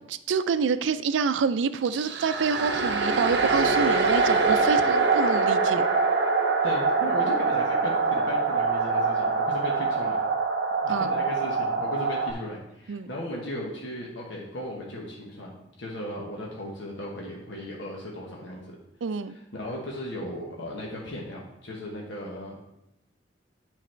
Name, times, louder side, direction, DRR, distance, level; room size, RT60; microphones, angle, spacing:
voice 1, 0.3-5.9 10.9-11.2 12.9-13.1 19.0-19.4, right 5 dB, 85° right, 12 dB, 0.4 m, -27 dB
sound 1, 1.8-12.3, right 4 dB, 70° right, 0.8 m, -24 dB
voice 2, 6.6-10.2 10.8-15.5 15.8-18.8 19.5-22.6, left 1 dB, 80° left, -3 dB, 1.2 m, -36 dB
9.1 x 4.0 x 4.4 m, 0.84 s
head